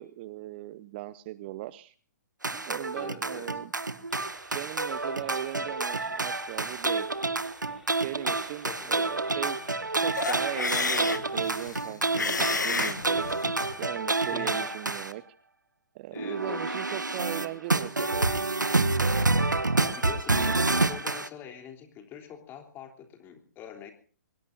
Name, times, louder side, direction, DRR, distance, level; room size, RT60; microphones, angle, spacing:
voice 1, 0.0-1.9 2.5-3.7 4.5-7.1 8.0-13.3 13.8-15.2 15.9-18.3, right 16 dB, 35° right, 17 dB, 0.8 m, -38 dB
sound 1, 2.4-15.1 16.1-21.3, right 3 dB, 80° right, 1.3 m, -28 dB
voice 2, 2.9-3.6 8.6-9.2 14.3-14.7 16.1-16.6 19.1-23.9, left 8 dB, 20° left, 5 dB, 3.6 m, -44 dB
sound 2, 4.1-11.8, right 1 dB, ahead, 4.2 m, -57 dB
sound 3, 10.1-13.7, left 4 dB, 75° left, 1.4 m, -31 dB
24.0 x 20.5 x 2.7 m, 0.40 s
figure-of-eight pair, 120°, 10 cm